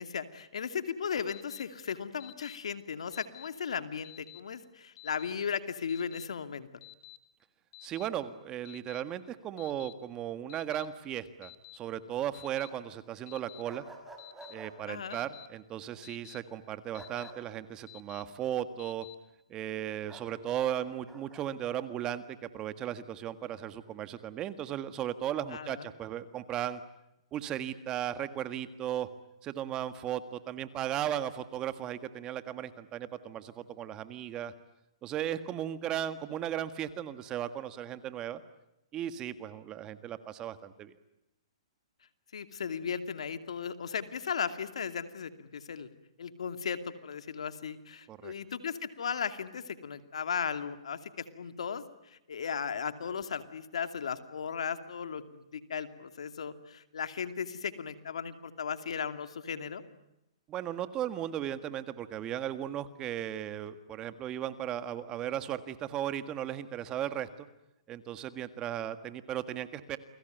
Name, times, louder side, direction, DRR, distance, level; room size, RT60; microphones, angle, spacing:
voice 1, 0.0-6.7 14.9-15.2 25.5-25.9 42.3-45.9 46.2-59.8, left 7 dB, 80° left, 10 dB, 2.6 m, -36 dB
Alarm, 1.3-1.6 2.2-2.6 3.1-3.5 4.0-4.4 5.0-5.3 5.9-6.2 6.8-7.2 7.7-8.1 8.7-9.0 9.6-9.9 10.5-10.9 11.4-11.8 12.3-12.7 13.3-13.6 14.2-14.5 15.1-15.5 16.0-16.4 16.9-17.3 17.9-18.2 18.8-19.2, left 20 dB, 40° left, 4.3 m, -50 dB
voice 2, 7.8-13.8 14.5-19.1 19.5-26.8 27.3-29.1 29.4-34.5 35.0-38.4 38.9-40.9 48.1-48.3 60.5-67.5 67.9-70.0, right 11 dB, 20° right, 12 dB, 1.6 m, -36 dB
sound 1, 13.6-14.7 16.9-17.4 20.1-20.3 21.1-21.4, right 2 dB, 5° right, 5.5 m, -49 dB
29.5 x 21.0 x 9.2 m, 0.87 s
hypercardioid pair, 150°, 3 cm